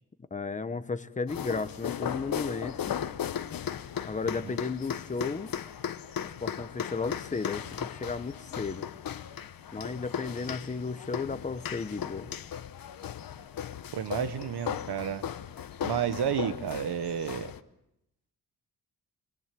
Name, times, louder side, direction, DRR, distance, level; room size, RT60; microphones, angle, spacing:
voice 1, 0.3-3.0 4.0-5.5 6.4-8.9 9.7-12.3, left 4 dB, 20° left, 12 dB, 0.9 m, -34 dB
sound 1, 1.3-17.6, left 9 dB, 60° left, 1.0 m, -37 dB
voice 2, 13.9-15.2 15.8-17.5, right 8 dB, 90° right, 12 dB, 1.3 m, -31 dB
26.0 x 21.5 x 7.6 m, 0.85 s
wide cardioid pair, 175°, 38 cm